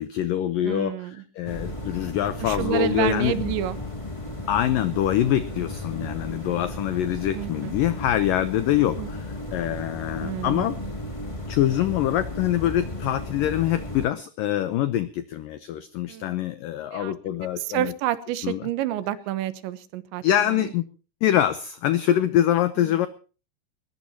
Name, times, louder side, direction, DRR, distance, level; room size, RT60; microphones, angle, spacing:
voice 1, 0.0-3.5 4.5-10.8 11.5-17.9 18.4-18.7 20.2-20.8 21.2-23.1, left 12 dB, 85° left, 13 dB, 1.9 m, -24 dB
voice 2, 0.6-1.2 2.4-3.8 7.3-7.7 9.0-9.1 10.2-10.8 16.1-16.4 16.9-17.2 17.6-20.6, right 13 dB, 85° right, 14 dB, 3.4 m, -29 dB
sound 1, 1.4-14.1, left 1 dB, 25° left, 0.6 m, -34 dB
20.5 x 20.0 x 2.9 m, 0.36 s
omnidirectional pair, 5.1 m